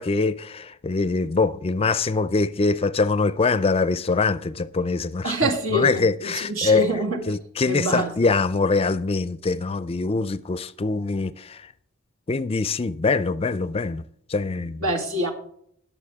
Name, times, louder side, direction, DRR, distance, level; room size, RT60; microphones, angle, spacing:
voice 1, 0.0-7.0 7.3-11.7 12.3-14.0 14.3-14.8, left 4 dB, 30° left, 0.4 m, -23 dB
voice 2, 5.2-7.2 7.7-8.1 14.8-15.3, right 1 dB, 75° right, 2.3 m, -25 dB
20.0 x 7.1 x 3.6 m
head